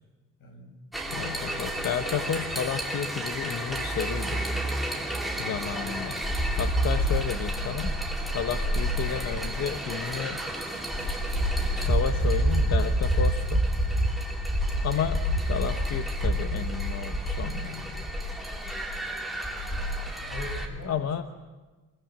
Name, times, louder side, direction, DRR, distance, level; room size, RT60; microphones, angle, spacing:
voice 1, 0.4-0.8 20.0-21.2, left 2 dB, 80° left, 4 dB, 6.8 m, -42 dB
sound 1, 0.9-20.7, right 1 dB, ahead, 2.7 m, -28 dB
voice 2, 1.1-4.4 5.4-6.2 6.6-7.9 8.3-10.4 11.7-13.6 14.8-18.1 20.9-21.2, left 8 dB, 55° left, 7 dB, 1.1 m, -32 dB
24.5 x 23.0 x 7.4 m, 1.3 s
cardioid pair, 170°, 31 cm